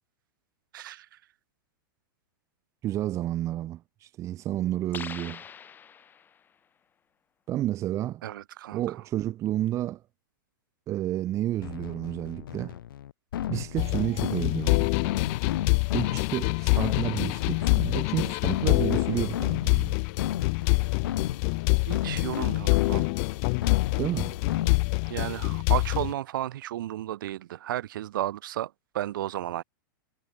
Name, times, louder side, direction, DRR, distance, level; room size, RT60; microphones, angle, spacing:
voice 1, 0.7-1.2 8.2-9.0 21.9-23.1 25.1-29.6, right 13 dB, 65° right, 5.7 m, -33 dB
voice 2, 2.8-5.4 7.5-8.2 8.7-10.0 10.9-12.8 13.5-14.9 15.9-20.0 24.0-24.4, right 13 dB, 25° right, 1.9 m, -31 dB
sound 1, 4.9-6.5, left 7 dB, 15° left, 5.4 m, -42 dB
sound 2, 11.6-25.1, left 11 dB, 75° left, 6.1 m, -34 dB
sound 3, 13.8-26.1, left 36 dB, 40° left, 0.6 m, -26 dB
supercardioid pair, 150°, 12 cm